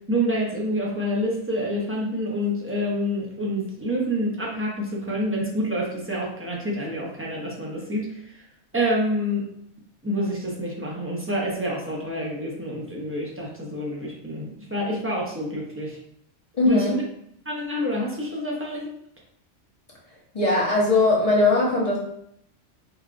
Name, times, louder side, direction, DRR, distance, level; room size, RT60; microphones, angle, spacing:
voice 1, 0.1-8.4 8.7-9.4 10.0-16.0 16.7-17.0 17.5-18.9, equal, 15° right, -4 dB, 0.5 m, -27 dB
voice 2, 16.5-16.9 20.3-22.0, left 2 dB, 35° left, -5 dB, 0.8 m, -19 dB
4.8 x 2.3 x 2.5 m, 0.72 s
omnidirectional pair, 1.3 m